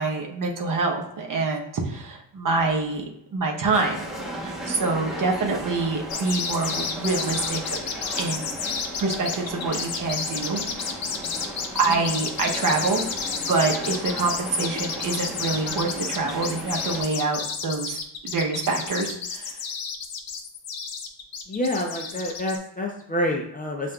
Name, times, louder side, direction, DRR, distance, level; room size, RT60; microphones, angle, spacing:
voice 1, 0.0-3.0 3.3-4.1 4.4-7.8 8.2-8.5 9.0-10.6 11.7-13.0 13.5-18.0 18.2-19.6, right 3 dB, 50° right, 1 dB, 0.8 m, -26 dB
sound 1, 3.7-17.0, right 1 dB, ahead, 0.9 m, -36 dB
sound 2, 6.1-22.6, left 6 dB, 55° left, 0.7 m, -31 dB
voice 2, 21.5-23.9, left 1 dB, 20° left, 0 dB, 0.4 m, -28 dB
7.1 x 2.5 x 2.2 m, 0.75 s
wide cardioid pair, 140°, 42 cm